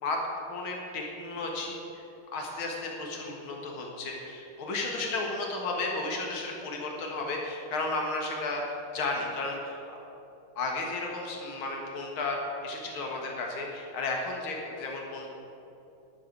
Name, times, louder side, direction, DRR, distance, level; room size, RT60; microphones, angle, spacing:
voice 1, 0.5-2.0 2.3-9.8 10.6-15.3, left 3 dB, 75° left, 0 dB, 2.4 m, -33 dB
11.0 x 7.0 x 9.3 m, 3.0 s
omnidirectional pair, 2.3 m